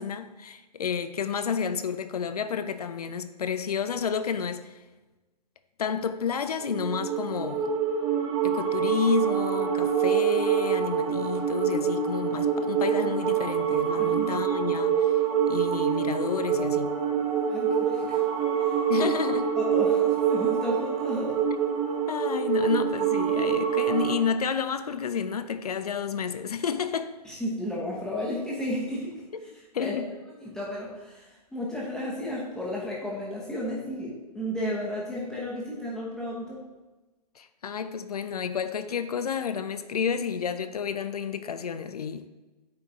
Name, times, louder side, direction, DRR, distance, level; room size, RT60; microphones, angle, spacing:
voice 1, 0.0-4.7 5.8-7.7 8.4-15.1 15.5-17.0 18.9-19.4 22.1-27.1 29.7-30.1 37.4-42.3, left 6 dB, 65° left, 0.5 m, -30 dB
sound 1, 6.6-24.2, right 7 dB, 25° right, 1.2 m, -26 dB
voice 2, 14.0-14.3 17.5-18.3 18.6-19.1 19.6-21.4 27.2-29.1 29.8-29.9 30.4-36.6, left 1 dB, 5° left, 1.0 m, -33 dB
8.7 x 3.9 x 3.6 m
figure-of-eight pair, 120°, 21 cm